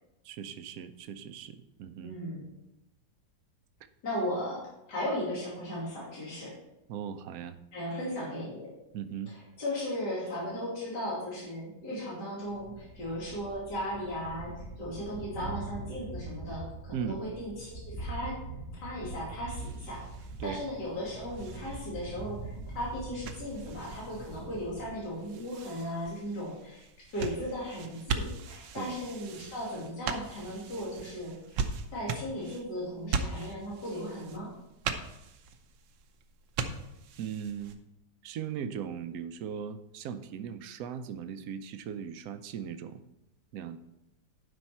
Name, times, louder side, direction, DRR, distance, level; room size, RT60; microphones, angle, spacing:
voice 1, 0.2-2.2 6.9-7.6 8.9-9.3 16.9-17.2 20.4-20.6 28.8-29.0 37.2-37.8 38.2-43.0 43.5-43.8, right 8 dB, 65° right, 11 dB, 1.0 m, -38 dB
voice 2, 2.0-2.4 4.0-6.5 7.7-8.7 9.3-18.4 18.7-20.0 20.4-31.6 31.9-34.5, equal, 70° left, -6 dB, 3.3 m, -36 dB
Thunder, 12.5-25.1, right 2 dB, 35° left, 1.8 m, -43 dB
sound 1, 19.6-37.8, right 5 dB, 85° right, 1.4 m, -40 dB
11.5 x 5.3 x 4.4 m, 0.91 s
omnidirectional pair, 1.9 m